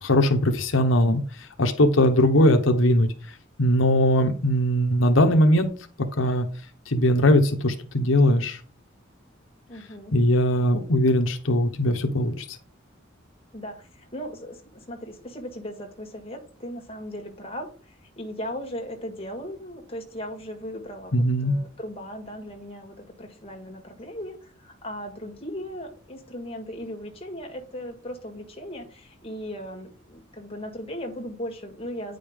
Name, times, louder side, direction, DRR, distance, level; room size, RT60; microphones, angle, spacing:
voice 1, 0.0-1.2 1.6-3.1 3.6-5.7 6.2-6.5 6.9-8.6 10.1-12.4 21.1-21.6, left 1 dB, 90° left, 6 dB, 1.0 m, -20 dB
voice 2, 9.7-10.1 13.5-32.2, equal, 30° left, 2 dB, 1.8 m, -37 dB
9.3 x 5.2 x 3.6 m, 0.39 s
head